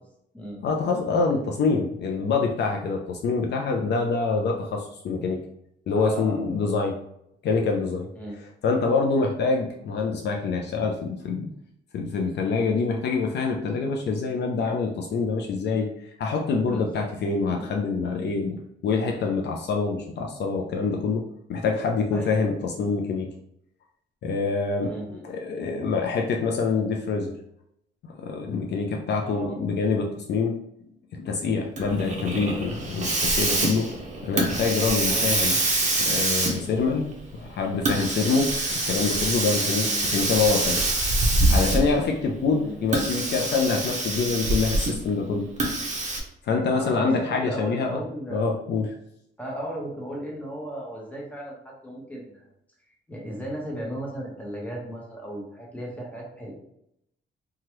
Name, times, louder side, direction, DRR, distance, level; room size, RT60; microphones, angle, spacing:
voice 1, 0.6-5.4 5.9-7.0 7.4-8.1 8.6-11.5 11.9-15.9 16.2-18.6 18.8-23.3 24.2-27.3 28.1-30.6 31.2-33.9 34.2-35.5 36.0-37.1 37.3-38.5 38.9-40.8 41.5-45.5 46.4-48.0 48.3-48.9, left 4 dB, 60° left, 1 dB, 0.5 m, -25 dB
voice 2, 5.9-6.5 8.1-8.4 16.6-17.1 17.5-17.7 22.1-22.6 24.8-25.2 29.2-29.6 35.1-35.5 39.8-40.1 42.6-43.1 46.7-47.1 47.4-48.5 49.4-52.5 53.1-56.5, right 1 dB, 5° left, -3 dB, 1.0 m, -36 dB
Hiss, 31.8-42.1 42.8-45.1 45.6-46.2, right 2 dB, 35° right, 0.7 m, -25 dB
2.9 x 2.3 x 3.0 m, 0.76 s
cardioid pair, 90°, 20 cm